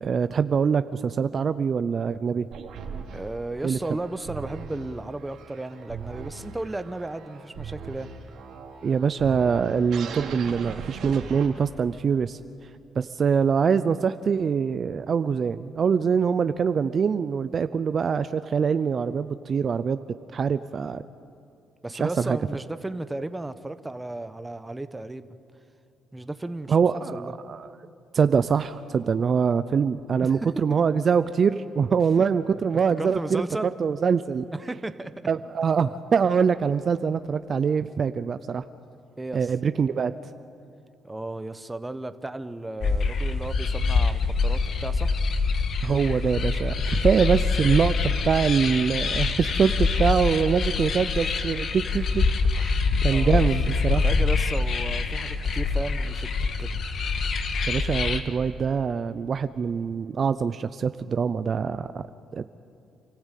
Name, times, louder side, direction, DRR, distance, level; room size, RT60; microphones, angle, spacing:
voice 1, 0.0-2.5 3.6-3.8 8.8-12.4 13.0-20.0 20.3-21.0 21.9-22.4 26.7-27.7 28.1-33.4 33.8-34.4 35.3-38.6 39.3-40.1 45.8-48.0 48.2-52.2 52.5-52.8 53.0-54.0 57.7-62.0 62.3-62.4, right 6 dB, 50° right, 12 dB, 0.5 m, -24 dB
sound 1, 2.5-11.9, right 5 dB, 80° right, 2.6 m, -40 dB
voice 2, 3.1-8.1 21.8-25.3 26.1-26.8 27.1-27.3 30.2-30.5 32.2-32.3 32.7-33.7 34.5-35.1 39.2-39.5 41.0-45.2 53.1-53.5 54.0-56.8, right 2 dB, 15° right, 11 dB, 1.0 m, -34 dB
sound 2, 42.8-58.2, left 4 dB, 60° left, 1.5 m, -25 dB
28.0 x 14.5 x 8.4 m, 2.5 s
cardioid pair, 90°, 0 cm